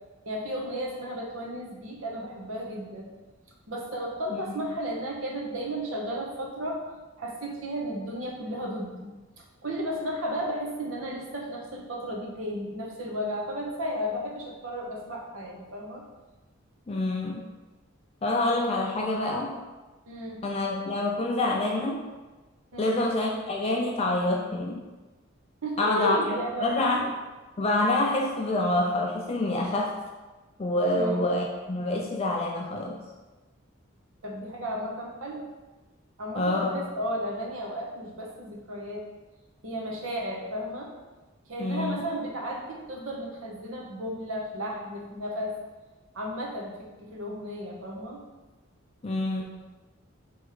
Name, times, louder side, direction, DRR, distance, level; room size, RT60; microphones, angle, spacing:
voice 1, 0.2-3.1 3.7-6.8 7.2-16.0 20.1-20.4 22.7-23.0 25.6-27.0 30.9-31.2 34.2-35.5 36.2-39.1 39.6-40.9 41.5-45.6 46.1-48.2, equal, 80° right, -1 dB, 0.9 m, -34 dB
voice 2, 16.9-17.4 18.2-19.5 20.4-22.0 22.8-24.8 25.8-27.1 27.6-30.0 30.6-33.0 36.3-36.7 41.6-42.0 49.0-49.4, left 2 dB, 30° left, 0 dB, 0.4 m, -27 dB
3.5 x 3.1 x 4.7 m, 1.2 s
head